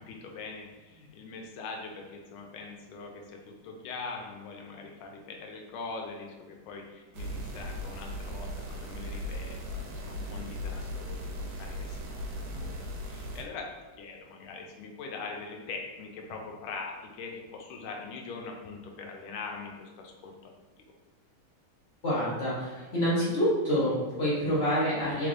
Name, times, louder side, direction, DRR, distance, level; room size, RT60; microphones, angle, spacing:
voice 1, 0.0-13.7 14.0-20.5, left 4 dB, 90° left, 1 dB, 1.4 m, -42 dB
sound 1, 7.1-13.4, left 1 dB, 85° right, 1.4 m, -37 dB
voice 2, 22.0-25.3, equal, 40° left, -9 dB, 1.1 m, -27 dB
3.5 x 3.3 x 2.5 m, 1.3 s
omnidirectional pair, 2.3 m